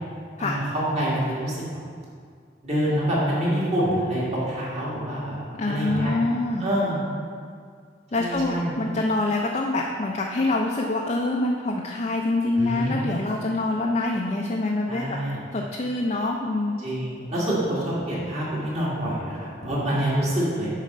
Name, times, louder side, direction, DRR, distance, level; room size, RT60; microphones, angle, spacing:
voice 1, 0.4-1.6 2.6-5.4 5.7-6.1 6.6-7.0 8.2-8.7 12.6-13.0 14.9-15.4 16.8-20.7, equal, 35° right, -7 dB, 1.9 m, -26 dB
voice 2, 5.6-6.7 8.1-15.1 15.5-16.8, left 2 dB, 35° left, -1 dB, 0.4 m, -25 dB
7.4 x 4.1 x 5.5 m, 2.1 s
head